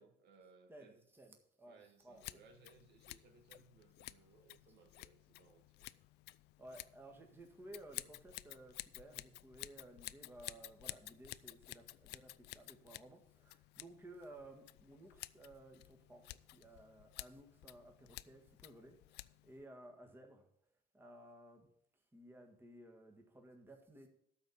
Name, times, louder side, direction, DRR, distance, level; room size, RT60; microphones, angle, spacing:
voice 1, 0.0-1.0 1.6-6.0, right 5 dB, 80° right, 1.8 m, -65 dB
voice 2, 0.7-2.4 6.6-20.5 20.9-21.7 22.1-24.1, right 1 dB, 15° right, 1.7 m, -57 dB
Scissors, 2.1-19.6, left 18 dB, 80° left, 0.4 m, -53 dB
12.5 x 4.3 x 8.2 m
cardioid pair, 110°, 17 cm